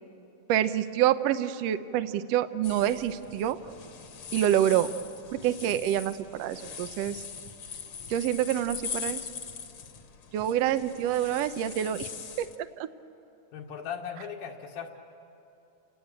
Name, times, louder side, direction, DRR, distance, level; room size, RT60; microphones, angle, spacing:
voice 1, 0.5-3.6 4.3-4.9 5.3-7.2 8.1-9.2 10.3-12.1 12.4-12.9, right 11 dB, 75° right, 10 dB, 1.5 m, -27 dB
sound 1, 2.6-12.6, left 6 dB, 55° left, 1.8 m, -41 dB
voice 2, 13.5-14.9, left 7 dB, 80° left, -1 dB, 3.2 m, -38 dB
29.5 x 18.5 x 8.8 m, 2.8 s
omnidirectional pair, 3.6 m